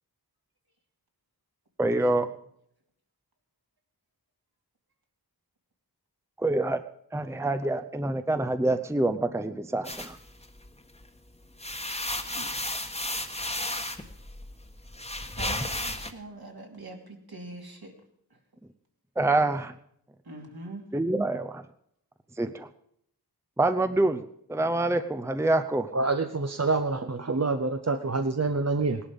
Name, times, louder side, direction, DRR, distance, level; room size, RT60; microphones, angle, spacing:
voice 1, 1.8-2.3 6.4-6.8 7.1-10.2 19.2-19.7 20.9-21.6 22.4-22.7 23.6-24.2 24.5-25.9, right 2 dB, 5° right, 9 dB, 0.7 m, -26 dB
sound 1, 9.9-11.0 11.4-16.1, left 1 dB, 15° left, 1.3 m, -34 dB
voice 2, 15.4-17.9 20.3-20.8, right 2 dB, 65° right, 1 dB, 2.9 m, -43 dB
voice 3, 25.9-29.0, right 3 dB, 40° right, 8 dB, 0.8 m, -27 dB
18.0 x 11.5 x 5.3 m, 0.73 s
wide cardioid pair, 60°, 39 cm